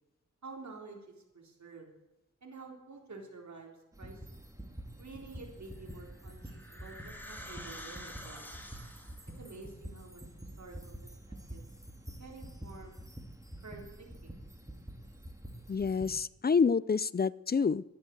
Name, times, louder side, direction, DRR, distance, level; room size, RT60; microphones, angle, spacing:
voice 1, 0.4-2.0 2.4-4.2 5.0-8.6 9.4-10.2 10.6-11.6 12.2-13.0 13.6-14.4, right 3 dB, 70° right, 1 dB, 3.9 m, -50 dB
sound 1, 3.9-16.2, right 1 dB, 10° right, 2.6 m, -47 dB
sound 2, 5.9-9.3, left 1 dB, 5° left, 3.0 m, -48 dB
voice 2, 15.7-17.8, left 5 dB, 35° left, 21 dB, 0.4 m, -28 dB
12.5 x 11.0 x 8.0 m, 0.91 s
cardioid pair, 60°, 29 cm